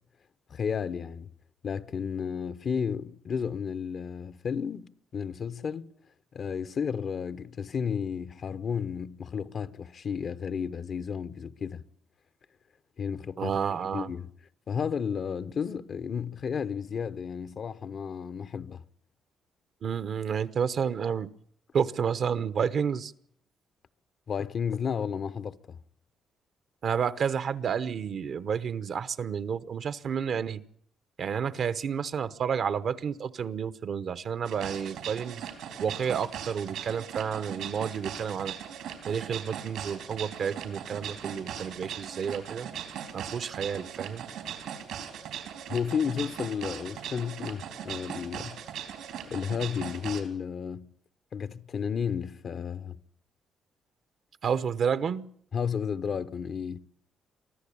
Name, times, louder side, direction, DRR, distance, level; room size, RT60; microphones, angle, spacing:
voice 1, 0.5-1.3 1.6-5.9 6.3-11.8 13.0-13.5 13.9-14.3 14.7-18.8 24.3-25.8 45.7-48.6 49.3-50.9 51.3-53.0 55.5-56.8, left 7 dB, 55° left, 0.9 m, -32 dB
voice 2, 13.4-14.1 19.8-21.3 21.7-23.1 26.8-30.6 31.2-35.4 35.8-38.5 39.0-42.7 43.1-44.2 54.4-55.2, right 7 dB, 60° right, 1.0 m, -30 dB
sound 1, 34.4-50.2, right 9 dB, 85° right, 4.0 m, -39 dB
24.0 x 14.0 x 8.6 m
cardioid pair, 90°, 0 cm